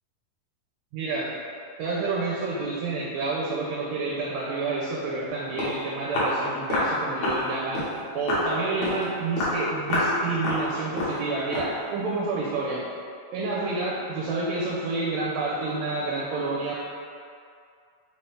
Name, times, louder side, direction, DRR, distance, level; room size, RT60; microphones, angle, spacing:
voice 1, 0.9-1.3 1.8-7.8 8.1-12.8 13.3-16.7, right 3 dB, 80° right, -5 dB, 2.3 m, -29 dB
Walk footsteps, 5.3-5.4 5.6-5.8 6.1-6.4 6.7-6.9 7.2-7.4 7.7-7.9 8.3-8.5 8.8-9.0 9.4-9.6 9.9-10.1 10.4-10.7 11.0-11.2 11.5-11.7, left 1 dB, 65° left, 2.1 m, -26 dB
5.4 x 3.0 x 3.1 m, 2.3 s
omnidirectional pair, 4.1 m